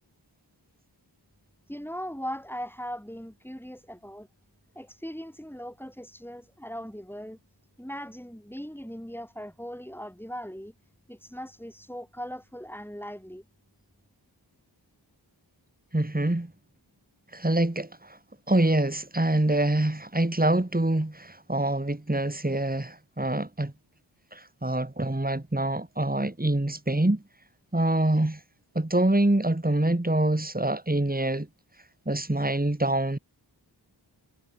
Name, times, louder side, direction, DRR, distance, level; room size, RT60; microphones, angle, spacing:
voice 1, 1.7-4.3 4.7-7.4 7.8-10.7 11.1-13.4, equal, 5° left, 6.7 m, -39 dB
voice 2, 15.9-16.5 17.3-18.2 18.5-23.7 24.3-27.2 27.7-28.4 28.7-31.5 32.1-33.2, right 1 dB, 20° right, 2.7 m, -25 dB
wide cardioid pair, 45°, 44 cm